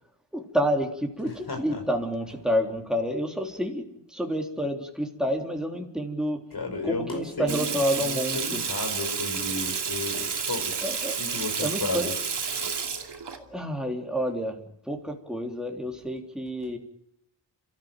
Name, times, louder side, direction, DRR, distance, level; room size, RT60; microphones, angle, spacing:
voice 1, 0.3-6.4 6.8-8.6 10.8-11.2 11.6-12.1 13.4-14.6 14.9-16.8, equal, ahead, 2 dB, 3.6 m, -29 dB
voice 2, 1.5-1.8 6.5-10.8 11.2-12.1 12.6-12.7, left 3 dB, 60° left, 4 dB, 5.1 m, -34 dB
Water tap faucet / Sink (filling or washing), 7.5-13.4, right 6 dB, 75° right, 2.8 m, -30 dB
30.0 x 14.5 x 9.1 m, 0.79 s
wide cardioid pair, 100°, 42 cm